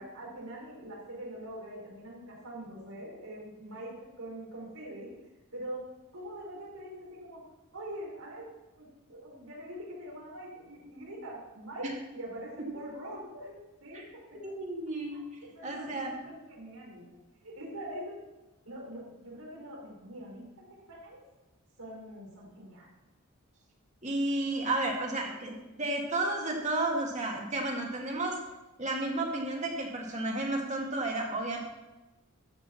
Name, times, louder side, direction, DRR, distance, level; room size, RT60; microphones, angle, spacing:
voice 1, 0.0-5.1 5.5-5.8 6.1-7.4 7.7-8.5 8.8-11.9 12.1-14.1 15.4-17.0 17.4-18.1 18.6-21.2 21.8-22.9, right 1 dB, 80° right, -3 dB, 4.6 m, -43 dB
voice 2, 14.4-15.2 15.6-16.1 24.0-28.4 28.8-31.6, right 2 dB, 30° right, 0 dB, 2.0 m, -32 dB
13.5 x 5.1 x 7.0 m, 1.0 s
head